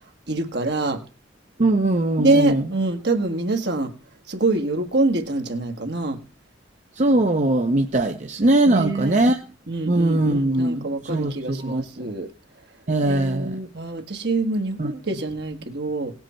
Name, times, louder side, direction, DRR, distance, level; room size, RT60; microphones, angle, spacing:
voice 1, 0.3-1.0 2.2-3.9 4.3-6.2 8.7-9.2 9.7-12.3 13.0-16.1, right 2 dB, 60° right, 1.6 m, -25 dB
voice 2, 1.6-2.7 7.0-9.4 9.9-12.1 12.9-13.6 14.8-14.9, right 2 dB, 40° right, 0.7 m, -21 dB
17.5 x 8.0 x 4.4 m
head